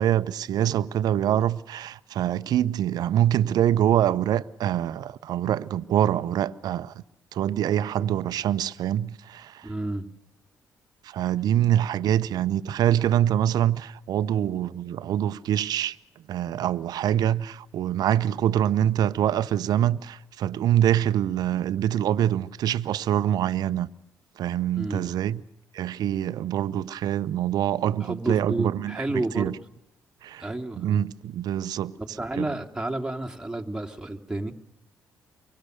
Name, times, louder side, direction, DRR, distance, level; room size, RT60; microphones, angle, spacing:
voice 1, 0.0-6.9 7.3-9.5 11.1-16.0 16.3-23.9 24.4-25.4 25.7-29.0 29.4-29.5 30.2-30.5 30.8-31.9 32.4-32.5, right 11 dB, 70° right, 0.8 m, -25 dB
voice 2, 9.6-10.1 24.8-25.1 28.0-29.5 30.4-31.0 32.0-34.5, right 2 dB, 10° right, 2.8 m, -31 dB
24.0 x 23.5 x 6.6 m
hypercardioid pair, 50°, 7 cm